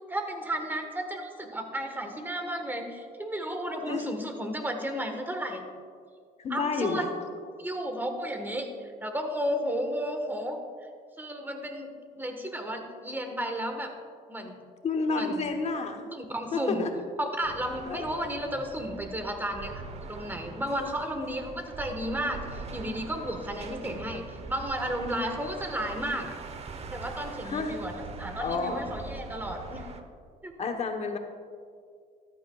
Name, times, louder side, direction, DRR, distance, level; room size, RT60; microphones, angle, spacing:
voice 1, 0.1-5.6 6.5-7.0 7.6-10.6 11.2-13.9 14.3-14.6 15.1-15.5 16.1-16.9 17.2-19.8 20.1-26.3 26.9-29.8 30.4-30.5, equal, 10° right, 5 dB, 1.4 m, -33 dB
voice 2, 6.4-7.1 14.8-16.0 16.5-17.0 17.9-18.2 23.9-24.3 27.4-27.8 28.4-28.8 30.6-31.2, left 4 dB, 40° left, 4 dB, 1.1 m, -30 dB
sound 1, 17.4-30.0, right 4 dB, 40° right, 0.8 m, -42 dB
14.0 x 12.5 x 2.4 m, 2.1 s
cardioid pair, 110°, 17 cm